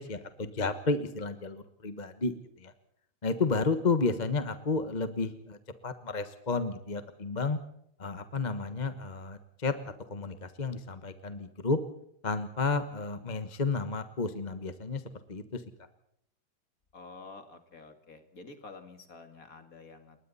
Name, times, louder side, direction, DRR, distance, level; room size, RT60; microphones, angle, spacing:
voice 1, 0.0-2.7 3.2-5.6 5.8-7.6 8.0-11.8 12.2-15.0 15.3-15.6, left 3 dB, 25° left, 10 dB, 1.1 m, -32 dB
voice 2, 16.9-20.2, left 3 dB, 45° left, 7 dB, 2.7 m, -49 dB
29.0 x 21.5 x 4.2 m, 0.73 s
omnidirectional pair, 2.2 m